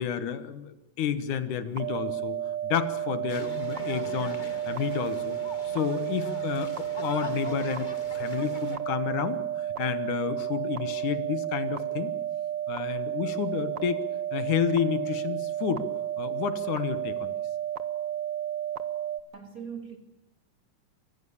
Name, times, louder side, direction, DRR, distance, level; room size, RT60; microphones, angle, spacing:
voice 1, 0.0-2.4 2.6-4.4 4.7-5.4 5.7-12.1 12.7-14.0 14.3-15.8 16.2-17.3, left 8 dB, 80° left, 12 dB, 2.8 m, -30 dB
sound 1, 1.8-19.2, right 11 dB, 65° right, 1.1 m, -32 dB
sound 2, 3.3-8.8, left 4 dB, 55° left, 0.5 m, -42 dB
voice 2, 19.3-20.0, right 7 dB, 30° right, 5 dB, 3.1 m, -40 dB
25.5 x 20.0 x 7.1 m, 0.88 s
omnidirectional pair, 3.5 m